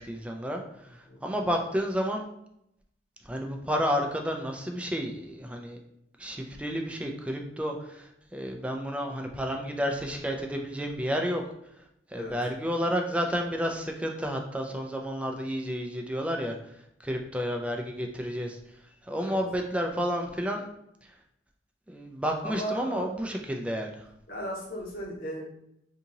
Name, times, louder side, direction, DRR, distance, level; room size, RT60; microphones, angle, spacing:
voice 1, 0.0-2.2 3.3-5.8 6.2-11.4 12.1-16.6 17.0-18.6 19.0-20.7 21.9-24.0, equal, 5° right, 2 dB, 0.4 m, -31 dB
voice 2, 22.4-23.5 24.3-25.5, equal, 55° left, -2 dB, 1.0 m, -36 dB
2.8 x 2.7 x 3.8 m, 0.79 s
head